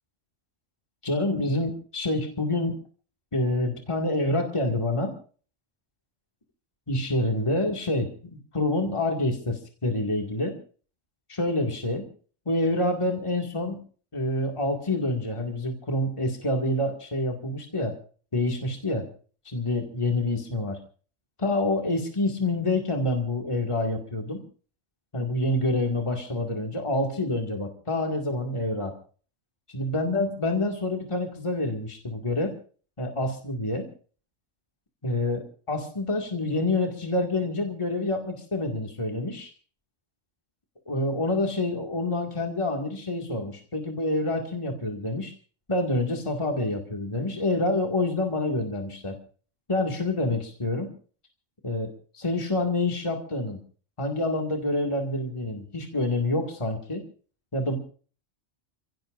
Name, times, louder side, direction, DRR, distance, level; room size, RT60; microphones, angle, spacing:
voice 1, 1.0-2.8 3.3-5.1 6.9-10.6 11.3-12.1 12.5-13.8 14.1-18.0 18.3-19.1 19.5-20.8 21.4-24.4 25.1-28.9 29.7-32.5 33.0-33.9 35.0-39.5 40.9-45.3 45.7-49.2 49.7-50.9 51.6-53.6 54.0-57.0 57.5-57.8, left 2 dB, 25° left, 2 dB, 2.2 m, -27 dB
29.0 x 16.5 x 2.5 m, 0.41 s
omnidirectional pair, 1.3 m